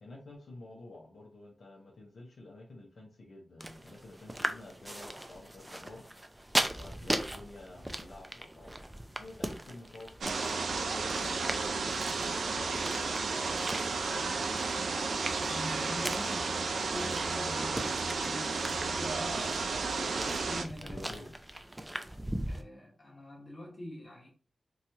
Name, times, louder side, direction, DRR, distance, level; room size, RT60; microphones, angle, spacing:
voice 1, 0.0-6.0 6.7-8.8 9.2-14.4 20.8-21.4, left 2 dB, 70° left, 0.8 m, -50 dB
sound 1, 3.6-22.6, right 1 dB, 10° right, 0.3 m, -39 dB
sound 2, 10.2-20.6, right 4 dB, 85° right, 0.4 m, -33 dB
voice 2, 15.4-19.4 20.0-21.3 22.5-24.3, left 1 dB, 30° left, 1.4 m, -44 dB
3.0 x 2.3 x 2.7 m
wide cardioid pair, 125°, 0 cm